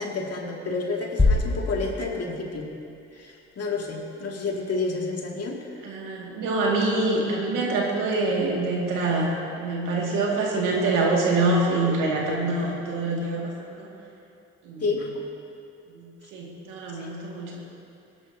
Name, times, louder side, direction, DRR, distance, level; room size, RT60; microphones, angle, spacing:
voice 1, 0.0-2.8 3.1-5.7 14.8-15.1 16.9-17.1, left 3 dB, 50° left, -1 dB, 2.3 m, -30 dB
sound 1, 1.2-3.0, left 3 dB, 15° left, 1.4 m, -25 dB
voice 2, 5.8-9.3 9.5-13.9 14.6-14.8 15.9-17.6, right 2 dB, 85° right, -3 dB, 2.2 m, -25 dB
18.5 x 11.0 x 2.8 m, 2.7 s
supercardioid pair, 55°, 31 cm